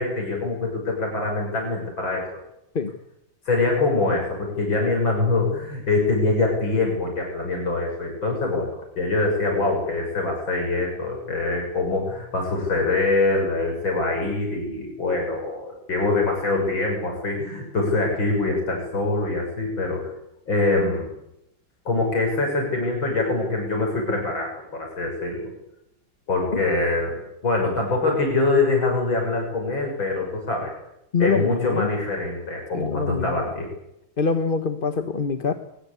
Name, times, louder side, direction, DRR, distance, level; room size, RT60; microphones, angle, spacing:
voice 1, 0.0-2.2 3.5-8.7 9.0-20.0 20.5-21.1 21.9-25.5 26.3-30.7 31.2-33.7, left 3 dB, 85° left, 0 dB, 7.1 m, -24 dB
voice 2, 31.1-31.9 32.7-33.4 34.2-35.5, left 5 dB, 30° left, 8 dB, 1.2 m, -24 dB
23.5 x 21.0 x 8.3 m, 0.83 s
omnidirectional pair, 2.1 m